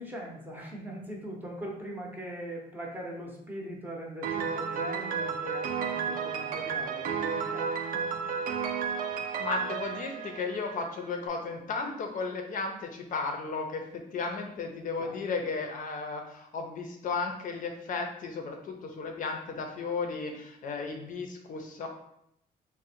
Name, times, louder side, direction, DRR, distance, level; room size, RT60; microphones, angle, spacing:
voice 1, 0.0-7.7 15.0-15.2, equal, 10° right, -2 dB, 0.7 m, -40 dB
Piano, 4.2-11.1, right 6 dB, 60° right, 0.4 m, -32 dB
voice 2, 9.4-21.9, left 4 dB, 55° left, 3 dB, 0.5 m, -34 dB
3.6 x 2.1 x 4.2 m, 0.76 s
cardioid pair, 165°, 17 cm